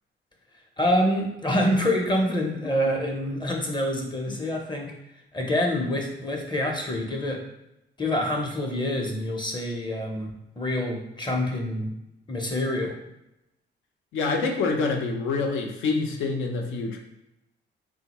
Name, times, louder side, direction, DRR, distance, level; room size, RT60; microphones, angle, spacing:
voice 1, 0.8-4.9 5.3-7.4 8.0-11.9 12.3-13.0, left 1 dB, 20° left, 1 dB, 0.6 m, -26 dB
voice 2, 14.1-17.0, left 4 dB, 85° left, 2 dB, 0.6 m, -26 dB
3.6 x 2.1 x 2.9 m, 0.88 s
cardioid pair, 90°, 20 cm